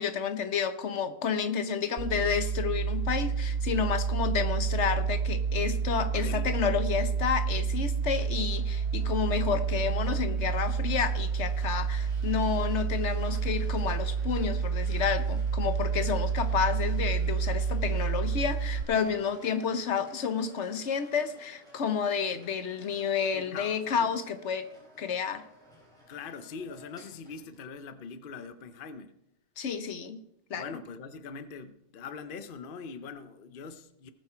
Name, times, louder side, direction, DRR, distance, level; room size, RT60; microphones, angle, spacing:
voice 1, 0.0-24.7 25.0-25.4 29.6-30.2 30.5-30.8, left 6 dB, 50° left, 1.0 m, -30 dB
sound 1, 2.0-18.8, right 6 dB, 70° right, 0.5 m, -29 dB
voice 2, 6.1-6.6 19.6-19.7 23.3-24.1 26.1-29.1 30.5-34.1, left 5 dB, 75° left, 0.5 m, -42 dB
sound 2, 8.1-27.6, equal, ahead, 5.4 m, -56 dB
19.5 x 7.7 x 4.4 m
omnidirectional pair, 1.9 m